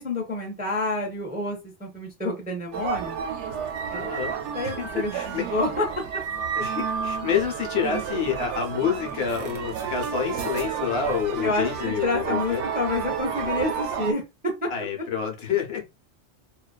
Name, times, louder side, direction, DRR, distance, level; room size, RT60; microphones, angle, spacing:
voice 1, 0.0-3.2 3.4-3.6 3.9-4.1 4.5-6.0 11.4-14.2 14.6-14.7, left 2 dB, 10° right, 0.4 m, -28 dB
sound 1, 2.7-14.1, right 7 dB, 80° right, 0.9 m, -31 dB
voice 2, 3.9-4.3 4.6-4.8 5.1-5.4 6.6-12.6 14.7-15.8, left 7 dB, 65° left, 0.9 m, -28 dB
2.5 x 2.2 x 2.3 m
omnidirectional pair, 1.2 m